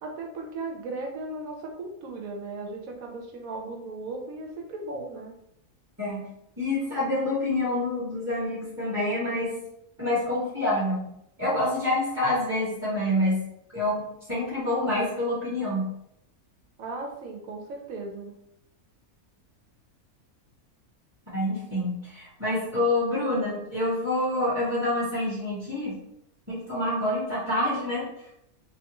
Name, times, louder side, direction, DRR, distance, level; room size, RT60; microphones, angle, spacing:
voice 1, 0.0-5.3 16.8-18.3, right 2 dB, 75° right, 1 dB, 1.1 m, -36 dB
voice 2, 6.6-9.5 10.0-11.1 11.4-13.4 13.7-14.0 14.3-15.9 21.3-26.0 26.5-28.1, left 1 dB, 15° right, -9 dB, 0.8 m, -27 dB
3.0 x 2.2 x 2.9 m, 0.75 s
omnidirectional pair, 1.5 m